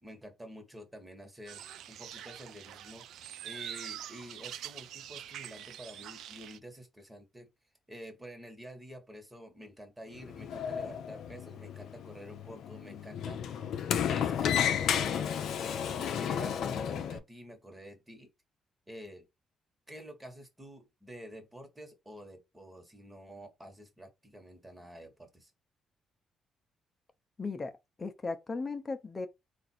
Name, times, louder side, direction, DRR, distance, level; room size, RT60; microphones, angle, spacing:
voice 1, 0.0-3.1 3.4-7.5 7.9-13.6 14.1-15.3 16.0-18.3 18.9-19.3 19.9-25.5, equal, 15° right, 1.4 m, -48 dB
sound 1, 1.5-6.6, right 11 dB, 80° right, 0.3 m, -45 dB
Sliding door, 10.1-17.2, left 8 dB, 75° left, 0.5 m, -33 dB
voice 2, 27.4-27.7 28.0-29.3, left 3 dB, 30° left, 0.8 m, -36 dB
3.8 x 2.6 x 4.3 m
cardioid pair, 90°, 0 cm